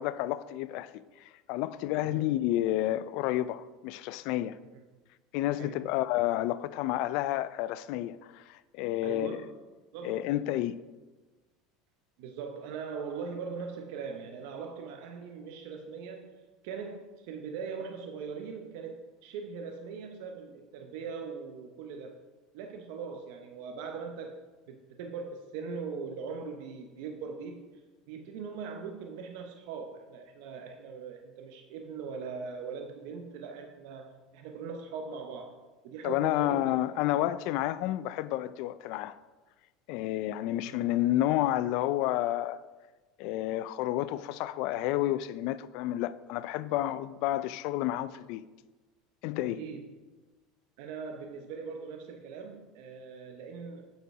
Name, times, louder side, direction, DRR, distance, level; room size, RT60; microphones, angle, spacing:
voice 1, 0.0-4.6 5.3-9.4 10.0-10.8 36.0-39.2 39.9-42.6 43.2-48.4 49.2-49.6, left 14 dB, 65° left, 0.3 m, -30 dB
voice 2, 9.0-9.5 9.9-10.2 12.2-22.2 22.5-24.4 24.7-27.8 28.1-35.6 35.8-36.8 40.7-40.8 49.6-49.9 50.8-53.9, right 5 dB, 70° right, 0.7 m, -41 dB
7.9 x 4.9 x 4.7 m
supercardioid pair, 115°, 0 cm